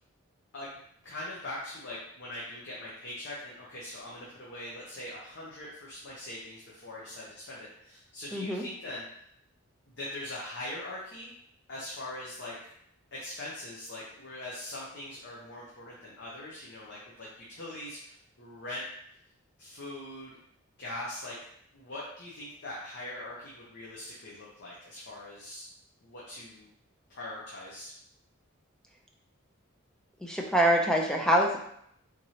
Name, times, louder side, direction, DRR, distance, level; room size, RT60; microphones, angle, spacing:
voice 1, 1.0-9.0 10.0-11.3 11.7-12.7 13.1-18.9 19.6-20.4 20.8-21.4 21.7-25.7 26.0-26.7 27.1-27.9, left 1 dB, 55° left, -5 dB, 0.7 m, -42 dB
voice 2, 8.3-8.6 30.2-31.6, equal, 5° left, 0 dB, 0.4 m, -25 dB
3.7 x 3.1 x 2.8 m, 0.71 s
head